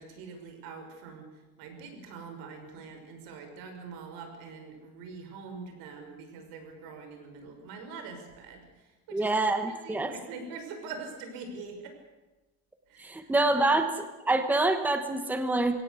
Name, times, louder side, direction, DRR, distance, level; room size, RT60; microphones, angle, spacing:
voice 1, 0.0-12.0 12.9-13.7, right 4 dB, 90° right, 6 dB, 5.9 m, -44 dB
voice 2, 9.1-10.1 13.0-13.9 14.3-15.8, right 2 dB, 5° right, 7 dB, 1.2 m, -26 dB
23.0 x 17.5 x 8.3 m, 1.1 s
cardioid pair, 175°, 34 cm